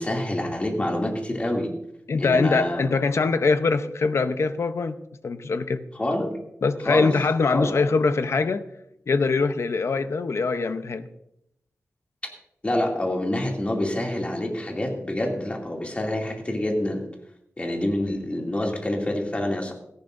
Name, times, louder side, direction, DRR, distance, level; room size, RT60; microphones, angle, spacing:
voice 1, 0.0-1.7 2.2-2.9 5.9-6.3 6.8-7.1 7.5-7.8 12.6-17.1 17.6-19.7, left 1 dB, 25° left, 0 dB, 2.6 m, -27 dB
voice 2, 2.1-5.0 5.2-5.8 6.6-8.6 9.1-11.1, left 4 dB, 65° left, 10 dB, 0.8 m, -23 dB
17.0 x 14.5 x 2.6 m, 0.78 s
wide cardioid pair, 130°, 5 cm